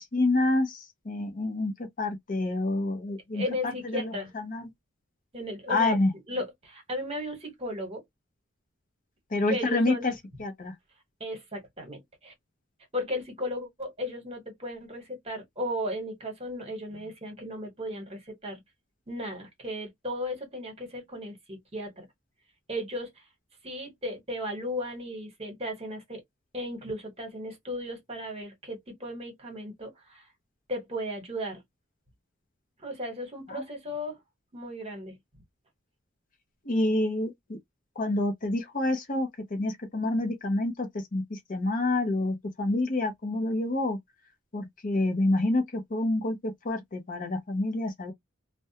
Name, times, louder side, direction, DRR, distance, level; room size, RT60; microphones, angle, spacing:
voice 1, 0.0-3.4 3.9-4.0 4.5-4.7 5.7-6.1 9.3-10.1 10.4-10.7 33.5-33.6 36.7-37.6 38.0-44.0 44.5-48.1, left 2 dB, 40° left, 0.6 m, -28 dB
voice 2, 3.3-4.3 5.3-6.0 6.3-8.0 9.5-10.1 11.2-12.3 12.9-18.6 19.1-22.1 22.7-23.1 23.6-26.2 26.5-30.3 30.7-31.6 32.8-34.2 34.5-35.2, left 1 dB, 30° right, 1.1 m, -35 dB
2.3 x 2.1 x 2.7 m
head